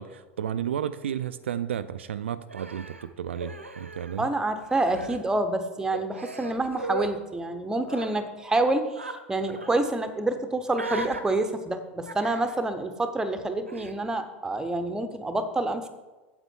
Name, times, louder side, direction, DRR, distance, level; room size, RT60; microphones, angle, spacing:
voice 1, 0.0-4.3, right 9 dB, 70° right, 12 dB, 0.4 m, -32 dB
Human voice, 2.5-4.3 4.6-5.2 5.9-7.1 7.8-8.1 9.0-9.2 9.5-9.7 10.7-11.2 12.1-12.6 13.7-14.0, right 2 dB, 85° right, 0.8 m, -37 dB
voice 2, 4.2-15.9, right 2 dB, 10° right, 8 dB, 0.9 m, -27 dB
8.2 x 7.9 x 4.5 m, 1.2 s
figure-of-eight pair, 85°, 7 cm